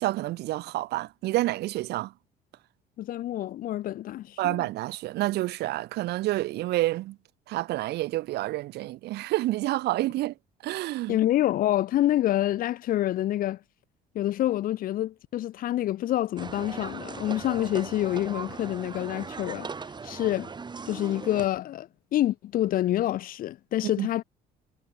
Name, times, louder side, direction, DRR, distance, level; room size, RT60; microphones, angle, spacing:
voice 1, 0.0-2.1 4.4-7.2 7.5-10.3 10.6-11.2 23.8-24.1, right 17 dB, 75° right, 1.0 m, -28 dB
voice 2, 3.0-4.6 11.1-13.6 14.1-19.7 20.0-20.5 20.9-24.2, left 13 dB, 55° left, 0.5 m, -27 dB
sound 1, 16.4-21.5, right 5 dB, 25° right, 2.1 m, -39 dB
cardioid pair, 110°, 17 cm